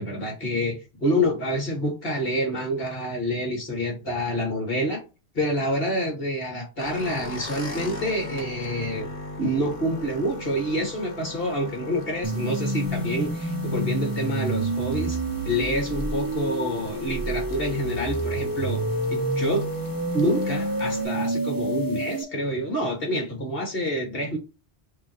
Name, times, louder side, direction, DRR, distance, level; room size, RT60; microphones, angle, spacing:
voice 1, 0.0-5.0 5.3-9.1 9.4-15.2 15.4-19.6 20.1-24.4, equal, 60° left, 2.4 m, -27 dB
sound 1, 6.8-21.0, left 1 dB, 35° left, 1.4 m, -39 dB
sound 2, 12.2-22.2, right 1 dB, 25° right, 0.6 m, -28 dB
6.4 x 2.7 x 3.0 m
omnidirectional pair, 1.1 m